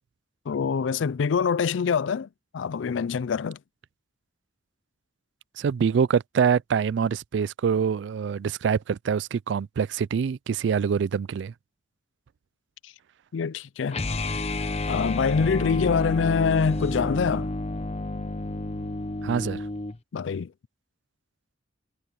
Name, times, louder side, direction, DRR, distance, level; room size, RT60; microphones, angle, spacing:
voice 1, 0.5-3.6 12.8-12.9 13.3-14.0 14.9-17.5 20.1-20.5, left 6 dB, 85° left, 0.4 m, -25 dB
voice 2, 5.6-11.5 19.2-19.6, right 6 dB, 70° right, 0.3 m, -25 dB
sound 1, 13.9-20.0, left 2 dB, 35° left, 0.8 m, -30 dB
head